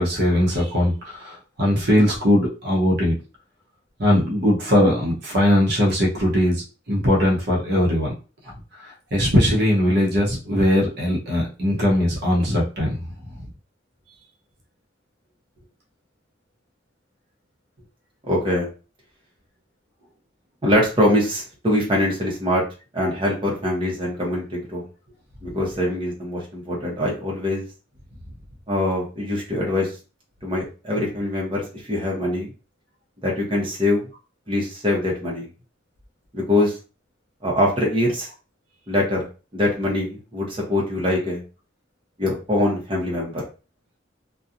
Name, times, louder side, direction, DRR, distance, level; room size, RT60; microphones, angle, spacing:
voice 1, 0.0-3.2 4.0-8.1 8.4-8.5 8.8-13.0, left 1 dB, 60° right, -3 dB, 0.8 m, -20 dB
voice 2, 18.2-18.7 20.6-22.6 22.9-24.9 25.4-27.7 28.7-29.9 30.4-32.5 33.2-34.1 34.5-35.5 36.3-36.8 37.4-38.3 38.9-39.2 39.5-41.4 42.2-43.4, left 1 dB, 25° right, -3 dB, 0.9 m, -23 dB
2.7 x 2.3 x 2.5 m, 0.33 s
head